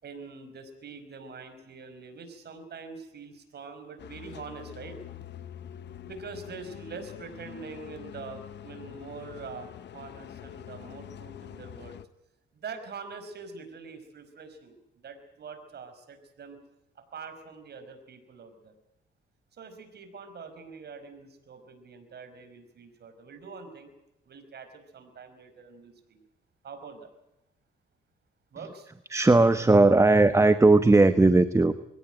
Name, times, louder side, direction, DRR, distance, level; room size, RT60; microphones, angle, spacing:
voice 1, 0.0-5.0 6.0-11.9 12.6-14.8 15.0-16.6 17.1-18.7 19.6-23.9 24.3-26.2 26.6-27.1 28.5-28.9, right 5 dB, 55° right, 8 dB, 5.2 m, -44 dB
sound 1, 4.0-12.1, left 10 dB, 60° left, 0.9 m, -45 dB
voice 2, 29.1-31.7, right 2 dB, 15° right, 11 dB, 1.1 m, -18 dB
22.5 x 17.0 x 9.0 m, 0.86 s
cardioid pair, 90°, 20 cm